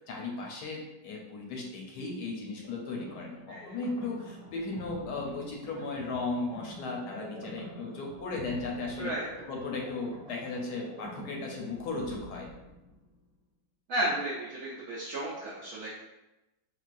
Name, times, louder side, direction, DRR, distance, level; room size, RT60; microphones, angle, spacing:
voice 1, 0.1-9.1 9.5-12.5, left 3 dB, 75° left, 0 dB, 1.1 m, -36 dB
sound 1, 2.6-13.2, equal, 35° right, 1.1 m, -46 dB
voice 2, 9.0-9.5 13.9-16.0, right 1 dB, 75° right, -6 dB, 0.7 m, -33 dB
3.8 x 2.3 x 2.5 m, 0.97 s
omnidirectional pair, 1.9 m